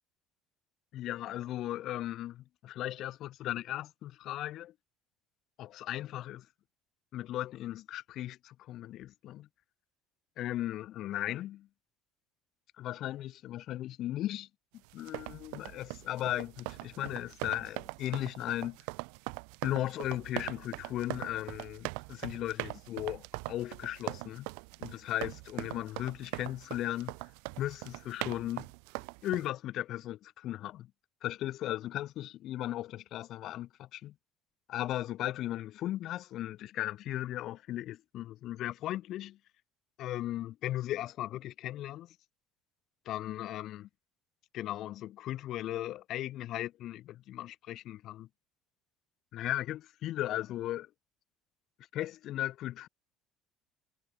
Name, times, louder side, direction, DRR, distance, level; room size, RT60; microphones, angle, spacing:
voice 1, 0.9-4.7 5.6-6.5 7.1-9.5 10.4-11.7 12.8-14.5 14.9-18.8 19.6-24.5 24.8-27.1 27.6-28.7 29.2-30.9 31.2-34.1 34.7-39.4 40.0-42.1 43.1-43.9 44.5-48.3 49.3-50.9 51.9-52.9, left 14 dB, 50° left, 0.5 m, -37 dB
sound 1, 14.9-29.5, right 40 dB or more, 85° right, 0.4 m, -41 dB
cardioid pair, 145°, 0 cm